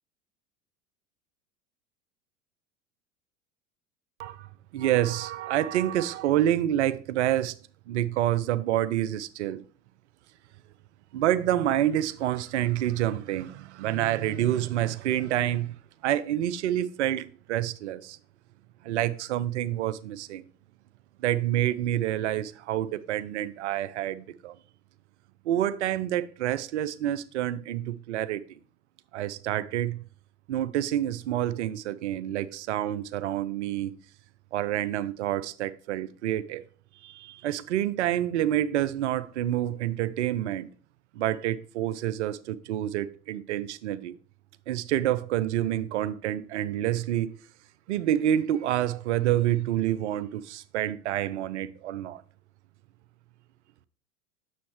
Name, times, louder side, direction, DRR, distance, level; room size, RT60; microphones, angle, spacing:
voice 1, 4.2-7.6 7.9-9.6 11.1-15.8 16.0-18.2 18.8-20.4 21.2-24.6 25.5-28.6 29.1-30.0 30.5-33.9 34.5-36.6 37.0-40.7 41.1-44.1 44.7-47.4 47.9-52.2, right 12 dB, 55° right, 0.5 m, -28 dB
6.7 x 6.4 x 3.1 m
figure-of-eight pair, 80°, 42 cm